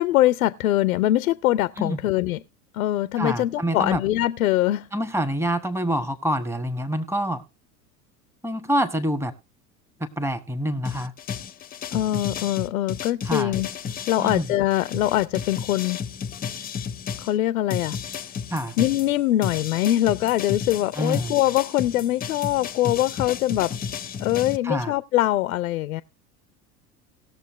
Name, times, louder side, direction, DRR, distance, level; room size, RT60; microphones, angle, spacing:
voice 1, 0.0-2.4 2.7-4.9 11.9-13.7 14.1-16.0 17.2-18.0 18.8-23.7 24.2-26.0, left 14 dB, 65° left, 0.6 m, -23 dB
voice 2, 3.2-4.0 4.9-7.4 8.4-9.3 10.0-11.1 13.2-13.5 14.2-14.5 18.5-18.7 21.0-21.4 24.6-24.9, equal, 5° right, 1.3 m, -26 dB
sound 1, 10.8-17.3 17.7-24.6, left 7 dB, 20° left, 0.7 m, -33 dB
19.0 x 6.9 x 3.1 m
figure-of-eight pair, 75°, 46 cm